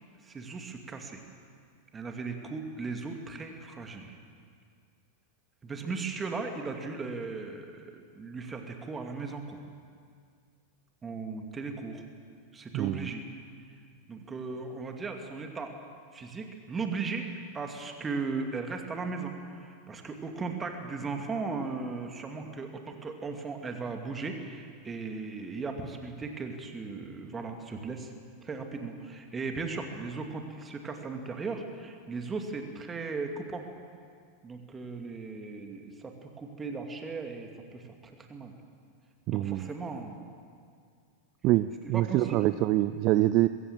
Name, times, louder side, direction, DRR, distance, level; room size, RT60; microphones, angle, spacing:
voice 1, 0.2-1.2 1.9-4.2 5.6-9.6 11.0-12.0 12.5-13.2 14.1-15.8 16.1-17.3 17.5-28.1 28.4-33.6 34.4-38.5 39.3-40.2 41.9-42.4, right 4 dB, 15° right, 4 dB, 2.4 m, -37 dB
voice 2, 12.7-13.1 39.3-39.7 41.4-43.5, right 16 dB, 40° right, 14 dB, 0.5 m, -25 dB
22.0 x 15.5 x 7.6 m, 2.2 s
figure-of-eight pair, 90°, 0 cm